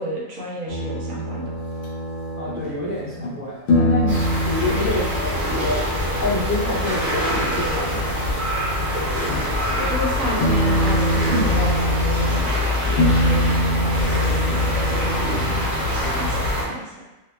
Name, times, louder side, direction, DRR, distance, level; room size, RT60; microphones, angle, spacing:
voice 1, 0.0-1.5 9.8-17.1, equal, 80° right, -3 dB, 1.0 m, -31 dB
sound 1, 0.7-3.4 3.7-9.6 9.8-10.0 10.4-12.5 13.0-15.9, right 1 dB, 65° left, 0.7 m, -25 dB
voice 2, 2.3-5.8 6.2-8.0, left 2 dB, 15° left, -12 dB, 0.9 m, -27 dB
sound 2, 4.1-16.6, left 2 dB, 45° right, 0.9 m, -24 dB
2.7 x 2.1 x 2.2 m, 1.0 s
omnidirectional pair, 1.4 m